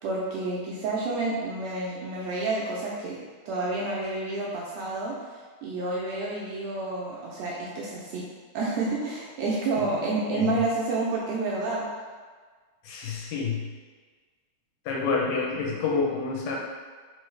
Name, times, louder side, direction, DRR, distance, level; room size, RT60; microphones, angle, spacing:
voice 1, 0.0-3.2 3.5-8.2 8.5-11.8, right 3 dB, 80° right, -4 dB, 1.6 m, -29 dB
voice 2, 12.8-13.7 14.9-16.6, left 4 dB, 80° left, -2 dB, 2.0 m, -28 dB
4.5 x 3.1 x 3.1 m, 1.5 s
omnidirectional pair, 3.4 m